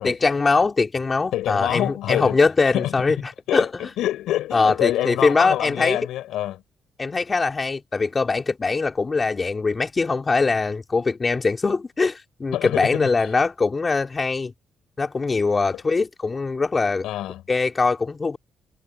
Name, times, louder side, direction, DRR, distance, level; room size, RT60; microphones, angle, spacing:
voice 1, 0.0-3.2 3.5-3.9 4.5-6.0 7.0-14.5 15.0-17.1 17.5-18.4, left 4 dB, 30° left, 3.9 m, -22 dB
voice 2, 1.3-2.4 2.7-2.9 3.5-3.7 4.0-6.6 12.5-13.1 17.0-17.4, left 13 dB, 85° left, 5.7 m, -26 dB
cardioid pair, 90°, 0 cm